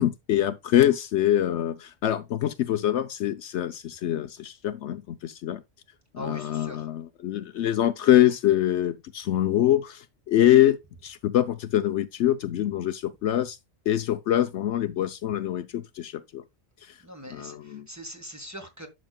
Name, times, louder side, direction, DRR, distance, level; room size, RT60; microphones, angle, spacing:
voice 1, 0.0-5.6 6.1-10.8 11.0-13.6 13.9-16.4 17.3-17.9, left 12 dB, 70° left, 0.9 m, -24 dB
voice 2, 6.2-6.8 17.0-18.9, equal, 15° right, 1.5 m, -41 dB
11.0 x 6.3 x 2.3 m
omnidirectional pair, 1.3 m